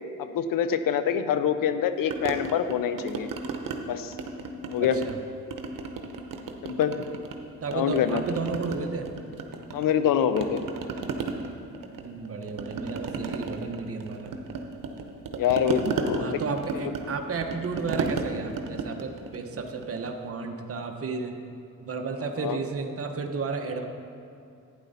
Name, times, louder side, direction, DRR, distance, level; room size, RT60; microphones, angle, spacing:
voice 1, 0.2-3.3 3.9-4.1 4.7-5.0 6.6-6.9 7.7-8.2 9.7-10.6 15.3-16.4 16.7-16.9 22.4-22.6, left 8 dB, 85° left, 10 dB, 0.7 m, -25 dB
sound 1, 2.1-3.8 4.1-5.2 5.5-7.4 7.7-10.1 10.4-20.2, right 4 dB, 80° right, 0.9 m, -34 dB
voice 2, 4.8-5.2 7.6-9.1 12.0-14.4 16.2-21.4 21.8-23.8, right 4 dB, 45° right, 4 dB, 1.0 m, -33 dB
11.5 x 9.7 x 4.1 m, 2.5 s
cardioid pair, 65°, 33 cm